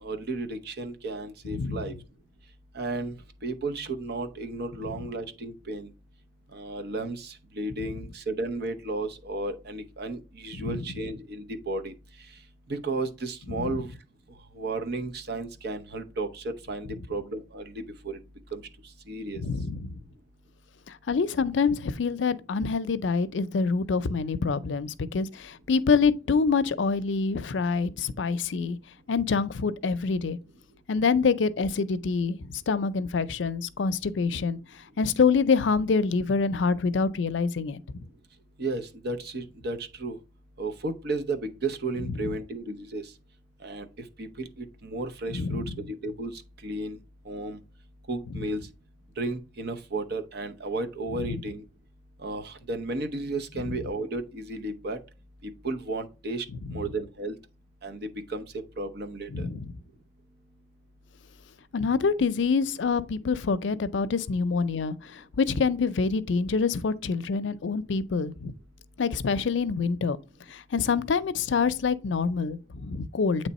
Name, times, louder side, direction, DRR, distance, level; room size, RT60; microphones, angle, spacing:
voice 1, 0.0-1.9 2.7-3.1 3.4-5.9 6.5-11.9 12.7-13.9 14.6-18.2 18.5-18.6 19.1-19.4 38.6-40.2 40.6-43.0 43.6-43.9 44.2-46.3 46.6-47.0 47.3-47.6 48.1-48.6 49.2-51.6 52.2-55.0 55.4-56.4 56.7-57.4 57.8-58.4 58.8-59.5, right 2 dB, 60° right, 0.8 m, -33 dB
voice 2, 1.5-1.8 4.8-4.9 10.5-10.8 13.6-13.8 19.3-19.9 20.9-28.8 29.1-30.4 30.9-34.6 35.0-38.1 42.0-42.3 45.3-45.7 51.2-51.4 53.6-53.8 56.7-56.8 59.3-59.7 61.7-68.5 69.0-70.2 70.5-73.5, left 5 dB, 80° left, 0.5 m, -26 dB
8.3 x 3.2 x 4.1 m
head